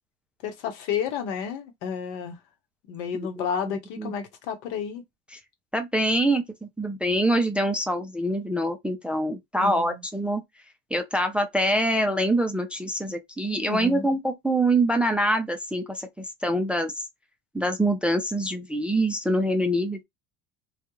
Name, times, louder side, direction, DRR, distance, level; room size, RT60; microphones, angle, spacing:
voice 1, 0.4-2.4 2.9-5.0 9.6-10.0 13.7-14.1, left 7 dB, 80° left, 1.0 m, -31 dB
voice 2, 3.6-4.1 5.7-10.4 10.9-16.9 17.5-20.0, right 1 dB, 5° right, 0.4 m, -25 dB
2.3 x 2.3 x 3.0 m
supercardioid pair, 115°, 34 cm